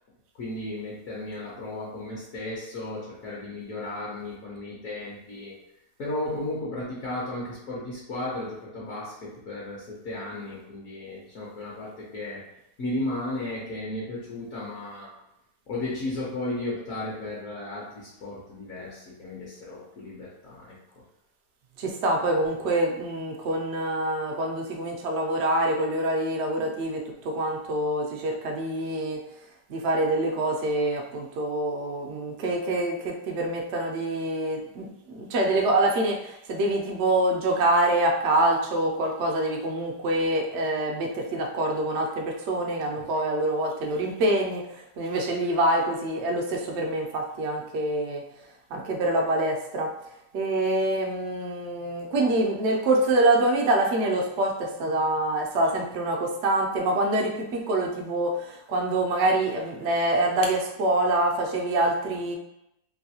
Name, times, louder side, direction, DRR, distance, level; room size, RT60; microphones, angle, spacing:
voice 1, 0.3-5.6 6.0-12.5 12.8-15.2 15.7-20.8 43.1-43.2, left 2 dB, 60° left, -6 dB, 1.1 m, -34 dB
voice 2, 21.8-29.2 29.7-48.2 48.7-49.9 50.3-62.4, right 1 dB, 80° right, 1 dB, 0.6 m, -25 dB
3.1 x 2.6 x 2.7 m, 0.85 s
omnidirectional pair, 1.8 m